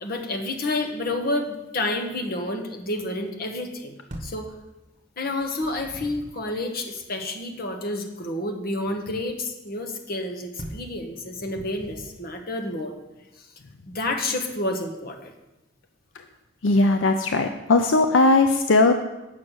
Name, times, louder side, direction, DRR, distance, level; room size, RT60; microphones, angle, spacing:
voice 1, 0.0-3.9 4.2-4.5 5.2-12.9 13.4-13.5 13.9-15.3, left 2 dB, 50° left, 4 dB, 1.2 m, -29 dB
sound 1, 4.1-4.5 5.4-6.4 10.6-11.0 11.5-12.3, equal, 35° right, 1.1 m, -40 dB
voice 2, 16.6-18.9, left 2 dB, 75° left, 6 dB, 0.6 m, -18 dB
8.4 x 6.3 x 6.3 m, 1.0 s
head